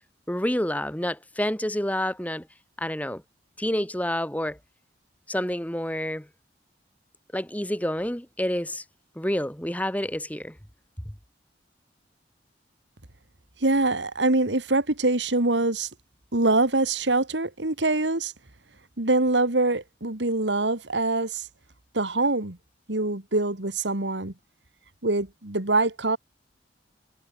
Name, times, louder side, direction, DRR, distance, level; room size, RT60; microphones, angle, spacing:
voice 1, 0.3-2.5 2.8-3.2 3.6-4.6 5.3-6.3 7.3-8.8 9.2-10.6, left 1 dB, 10° left, 2.2 m, -28 dB
voice 2, 13.6-15.9 16.3-18.3 19.0-21.5 21.9-22.6 22.9-24.3 25.0-26.2, right 2 dB, 90° right, 2.6 m, -24 dB
head